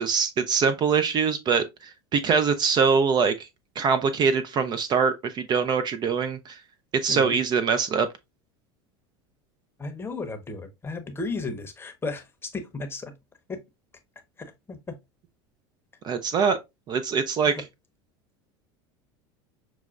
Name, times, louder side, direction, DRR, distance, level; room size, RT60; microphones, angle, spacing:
voice 1, 0.0-1.6 2.1-3.5 3.8-6.6 7.0-8.1 16.0-16.6 16.9-17.5, right 5 dB, 35° right, 0.4 m, -23 dB
voice 2, 7.1-7.4 9.8-13.1 13.5-13.6 14.4-14.9 17.5-17.6, left 3 dB, 20° left, 0.8 m, -34 dB
5.9 x 2.1 x 2.4 m
hypercardioid pair, 95°, 13 cm